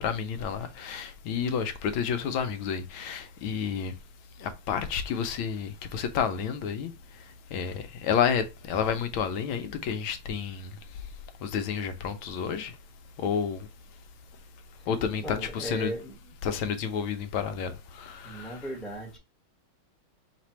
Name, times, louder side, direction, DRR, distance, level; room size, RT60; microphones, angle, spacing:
voice 1, 0.0-3.9 4.4-6.9 7.5-10.7 11.4-12.7 13.2-13.7 14.9-15.9 16.4-18.7, left 7 dB, 80° left, 1.3 m, -30 dB
voice 2, 15.2-16.2 18.2-19.2, right 1 dB, ahead, 0.8 m, -37 dB
4.2 x 3.3 x 2.9 m
omnidirectional pair, 2.4 m